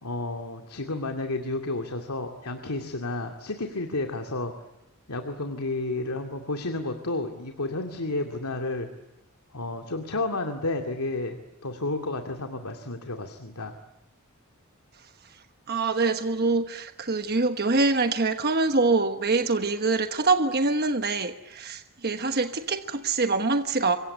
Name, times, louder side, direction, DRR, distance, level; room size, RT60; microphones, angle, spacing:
voice 1, 0.0-4.5 5.1-8.9 9.5-11.4 11.6-13.7, left 2 dB, 85° left, 4 dB, 2.4 m, -31 dB
voice 2, 15.7-24.0, right 3 dB, 45° right, 7 dB, 1.2 m, -25 dB
27.0 x 23.5 x 8.2 m, 0.90 s
head